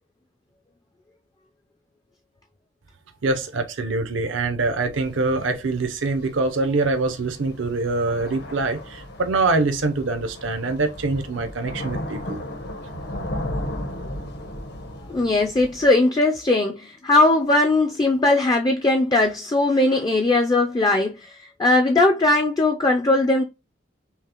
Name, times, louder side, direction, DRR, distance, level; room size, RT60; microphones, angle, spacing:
voice 1, 3.2-12.4, right 3 dB, 75° right, 0.6 m, -24 dB
Thunder / Rain, 4.9-15.9, left 1 dB, 60° left, 0.9 m, -35 dB
voice 2, 15.1-23.4, left 2 dB, 20° left, 0.4 m, -19 dB
5.5 x 2.0 x 2.9 m
head